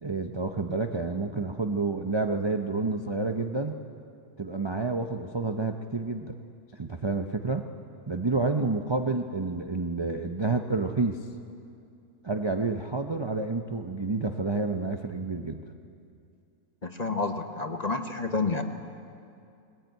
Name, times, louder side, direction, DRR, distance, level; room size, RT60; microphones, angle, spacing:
voice 1, 0.0-3.8 4.4-6.4 6.7-7.6 8.1-11.2 12.2-15.6, right 3 dB, 30° right, 5 dB, 0.5 m, -29 dB
voice 2, 16.8-18.6, left 3 dB, 30° left, 6 dB, 1.0 m, -29 dB
20.0 x 19.0 x 9.1 m, 2.5 s
omnidirectional pair, 1.7 m